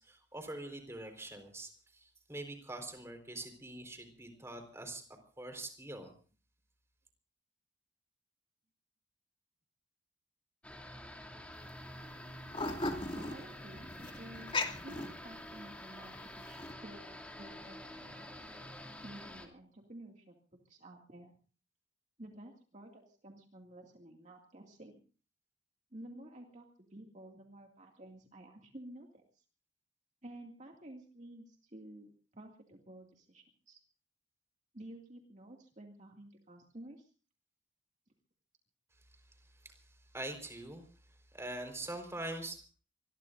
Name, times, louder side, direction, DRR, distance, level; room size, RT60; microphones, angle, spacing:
voice 1, 0.0-5.0 5.4-6.1 39.6-40.8 41.3-42.7, right 1 dB, 15° right, 5 dB, 4.4 m, -44 dB
sound 1, 10.6-19.5, left 1 dB, 5° left, 2.6 m, -48 dB
sound 2, 11.5-11.7 12.0-15.7 16.2-16.7, left 2 dB, 25° left, 2.4 m, -37 dB
voice 2, 13.1-14.6 14.8-17.1 17.3-18.3 19.0-20.4 20.6-21.3 22.2-25.0 25.9-29.4 30.2-33.8 34.7-37.1, right 1 dB, 40° right, 1 dB, 2.3 m, -52 dB
26.0 x 21.0 x 2.6 m, 0.40 s
head